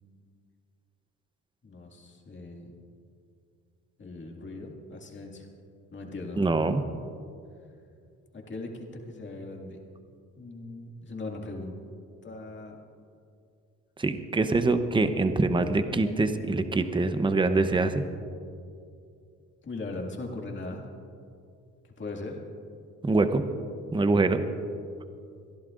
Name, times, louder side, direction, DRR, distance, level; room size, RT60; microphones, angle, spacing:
voice 1, 1.6-2.7 4.0-5.5 5.9-6.4 8.3-9.8 10.3-11.7 12.2-12.8 14.4-14.6 19.6-20.8 22.0-22.4, left 2 dB, 40° left, 1 dB, 2.1 m, -39 dB
voice 2, 6.4-6.8 14.0-18.0 23.0-23.4 23.9-24.4, right 3 dB, 15° right, 9 dB, 0.7 m, -24 dB
27.0 x 11.0 x 2.5 m, 2.4 s
cardioid pair, 90°, 30 cm